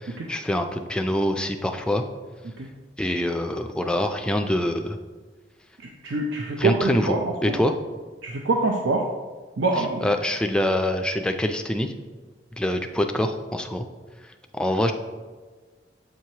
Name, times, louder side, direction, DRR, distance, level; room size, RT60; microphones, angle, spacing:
voice 1, 0.0-2.0 3.0-5.0 6.6-7.1 7.4-7.7 9.8-11.9 12.6-13.8 14.5-14.9, left 1 dB, 5° left, 5 dB, 0.3 m, -25 dB
voice 2, 6.0-7.6 8.2-9.1 9.6-10.0, right 3 dB, 85° right, 0 dB, 0.5 m, -25 dB
7.6 x 4.6 x 2.8 m, 1.4 s
head